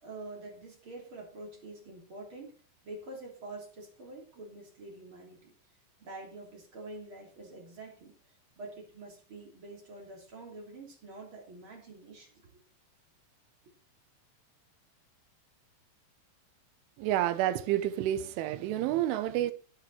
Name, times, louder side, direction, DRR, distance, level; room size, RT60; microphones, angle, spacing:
voice 1, 0.0-2.6 2.8-5.5 6.0-8.1 8.6-12.4, right 2 dB, 30° right, 3.3 m, -46 dB
voice 2, 17.0-19.5, right 13 dB, 85° right, 3.4 m, -29 dB
11.5 x 10.5 x 4.4 m
omnidirectional pair, 5.5 m